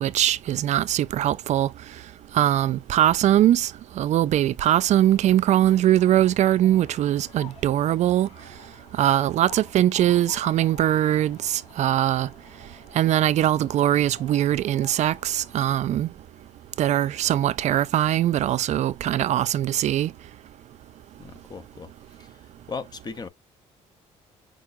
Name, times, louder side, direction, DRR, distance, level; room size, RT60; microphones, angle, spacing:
voice 1, 0.0-1.7 2.3-3.7 4.0-8.3 9.0-12.3 13.0-16.1 16.8-20.1, right 12 dB, 65° right, 0.4 m, -21 dB
sound 1, 4.7-15.6, left 4 dB, 50° left, 2.0 m, -49 dB
voice 2, 21.2-23.3, left 5 dB, 30° left, 0.8 m, -38 dB
6.0 x 2.4 x 2.6 m
cardioid pair, 110°, 13 cm